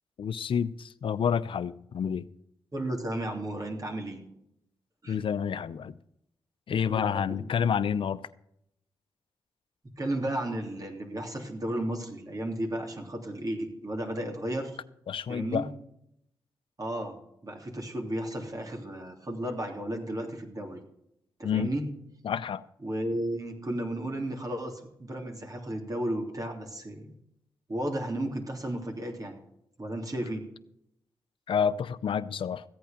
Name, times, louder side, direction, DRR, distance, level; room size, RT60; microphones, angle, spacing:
voice 1, 0.2-2.3 5.1-5.9 6.7-8.2 15.1-15.7 21.4-21.7 22.2-22.6 31.5-32.6, left 7 dB, 65° left, 15 dB, 0.6 m, -29 dB
voice 2, 2.7-4.2 5.0-5.2 6.9-7.6 10.0-14.8 15.3-15.7 16.8-17.1 17.4-20.8 21.4-21.9 22.8-27.1 27.7-29.3 29.8-30.4, right 1 dB, 40° right, 1 dB, 3.1 m, -33 dB
15.0 x 8.5 x 5.2 m, 0.77 s
cardioid pair, 50°, 9 cm